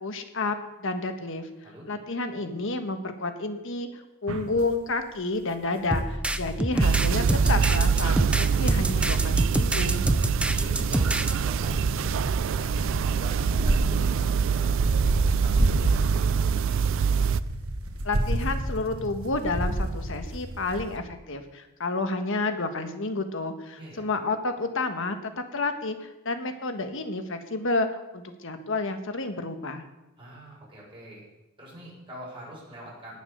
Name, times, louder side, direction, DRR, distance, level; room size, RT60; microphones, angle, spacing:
voice 1, 0.0-1.5 1.9-10.0 18.0-25.2 25.5-29.8, left 3 dB, 65° left, 7 dB, 1.5 m, -30 dB
sound 1, 4.3-4.6 5.8-5.9 6.7-21.0, right 1 dB, 75° right, 1.6 m, -31 dB
sound 2, 5.9-11.3, right 1 dB, 5° right, 0.5 m, -27 dB
sound 3, 6.8-17.4, right 6 dB, 60° right, 0.4 m, -24 dB
voice 2, 10.6-12.3 12.5-16.8 23.7-24.1 30.2-31.2 31.6-33.2, right 1 dB, 25° right, -5 dB, 6.5 m, -44 dB
18.5 x 7.2 x 6.8 m, 1.0 s
head